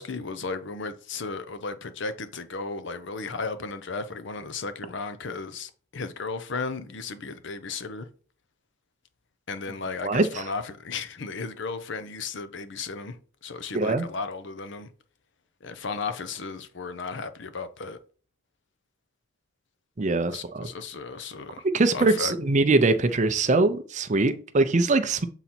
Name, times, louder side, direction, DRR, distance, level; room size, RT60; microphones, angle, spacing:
voice 1, 0.0-8.1 9.5-13.2 13.4-14.9 15.6-18.0 20.3-21.6 21.9-22.3, left 4 dB, 60° left, 0.7 m, -35 dB
voice 2, 10.0-10.5 13.7-14.0 20.0-20.7 21.6-25.3, right 3 dB, 35° right, 0.5 m, -22 dB
7.2 x 4.0 x 4.3 m
head